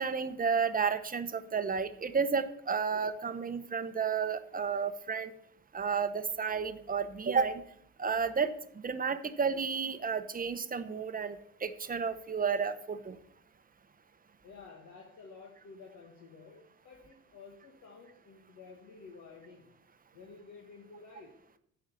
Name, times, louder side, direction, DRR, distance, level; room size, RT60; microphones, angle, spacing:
voice 1, 0.0-5.3 5.7-7.6 8.0-8.5 8.8-11.4 11.6-13.2, right 6 dB, 30° right, 11 dB, 0.8 m, -31 dB
voice 2, 14.4-19.7 20.1-21.4, left 4 dB, 70° left, -1 dB, 1.6 m, -52 dB
10.0 x 4.8 x 6.9 m, 0.70 s
cardioid pair, 90°, 30 cm